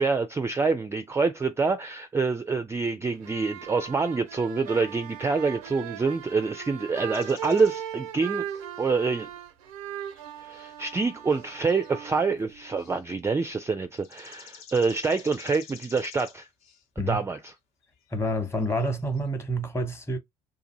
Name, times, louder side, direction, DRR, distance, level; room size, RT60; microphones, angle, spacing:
voice 1, 0.0-8.5 8.8-9.3 10.4-16.5 17.0-17.5, right 4 dB, 15° right, 0.4 m, -26 dB
sound 1, 3.1-12.9, right 10 dB, 75° right, 0.5 m, -39 dB
sound 2, 7.1-9.2 10.0-11.0 11.3-12.3 12.8-13.1 13.4-13.5 14.0-16.8 17.6-17.7 17.8-18.1 18.4-19.2, left 8 dB, 60° left, 1.0 m, -51 dB
voice 2, 18.1-20.2, equal, 15° left, 1.0 m, -28 dB
2.6 x 2.5 x 4.0 m
figure-of-eight pair, 55°, 18 cm